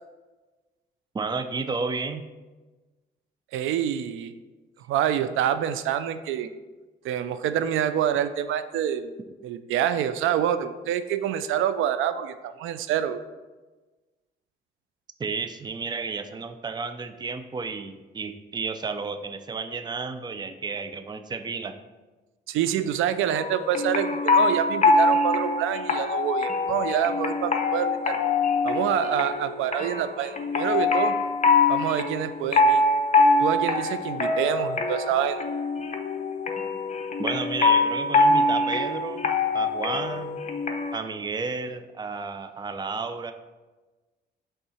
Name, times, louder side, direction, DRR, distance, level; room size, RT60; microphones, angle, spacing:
voice 1, 1.1-2.2 15.2-21.7 37.2-39.3 39.5-40.4 40.9-43.3, right 4 dB, 20° right, 9 dB, 0.5 m, -32 dB
voice 2, 3.5-4.3 4.9-6.5 7.0-9.1 9.4-13.2 22.5-28.2 28.6-31.2 31.7-32.8 33.4-35.4, right 10 dB, 85° right, 12 dB, 0.4 m, -26 dB
sound 1, 23.3-41.0, left 3 dB, 35° left, 0.7 m, -24 dB
5.5 x 3.6 x 5.6 m, 1.2 s
cardioid pair, 90°, 20 cm